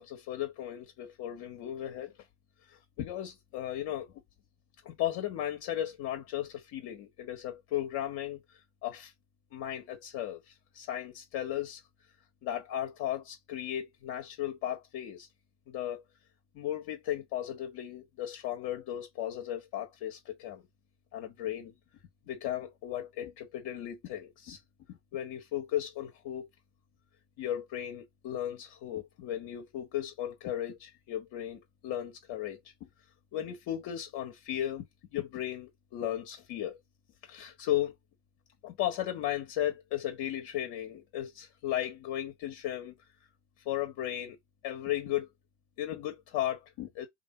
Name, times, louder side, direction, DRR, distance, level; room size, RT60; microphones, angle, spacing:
voice 1, 0.0-2.1 3.0-4.1 4.8-9.1 9.5-11.8 12.4-15.3 15.7-16.0 16.5-20.6 21.1-21.7 22.3-24.6 24.9-26.5 27.4-32.6 33.3-34.9 35.1-36.8 37.3-37.9 38.6-42.9 43.6-44.4 44.6-45.3 45.8-47.1, left 12 dB, 50° left, 1.6 m, -35 dB
3.6 x 2.7 x 4.6 m
hypercardioid pair, 90°, 48 cm